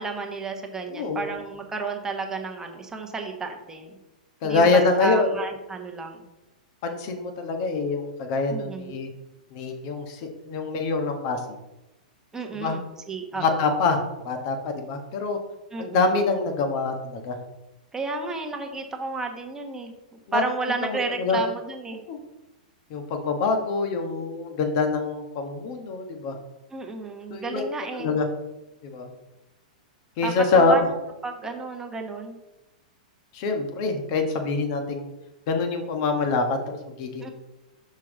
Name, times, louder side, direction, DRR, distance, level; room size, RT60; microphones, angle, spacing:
voice 1, 0.0-3.9 4.4-6.3 8.5-8.9 12.3-12.8 13.1-13.7 15.7-16.1 17.9-19.9 20.3-22.0 26.7-28.2 30.2-32.4 37.2-37.3, right 4 dB, 15° right, 3 dB, 1.1 m, -32 dB
voice 2, 0.9-1.2 4.4-5.3 6.8-9.1 9.5-11.6 12.5-12.8 13.4-14.0 14.2-15.4 15.8-17.4 20.3-20.4 20.9-21.4 22.1-22.2 22.9-26.4 27.3-27.6 28.0-28.3 28.8-29.1 30.2-30.8 33.3-35.1 35.5-37.3, left 4 dB, 50° left, 4 dB, 1.3 m, -25 dB
6.2 x 5.6 x 3.9 m, 0.98 s
hypercardioid pair, 110°, 4 cm